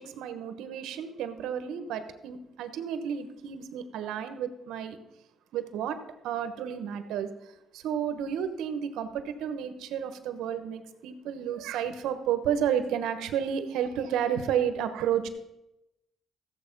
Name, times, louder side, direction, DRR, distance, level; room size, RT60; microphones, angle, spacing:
voice 1, 0.0-5.0 5.5-6.0 6.2-15.3, right 9 dB, 90° right, 9 dB, 1.1 m, -31 dB
14.5 x 7.7 x 5.3 m, 0.93 s
cardioid pair, 90°, 0 cm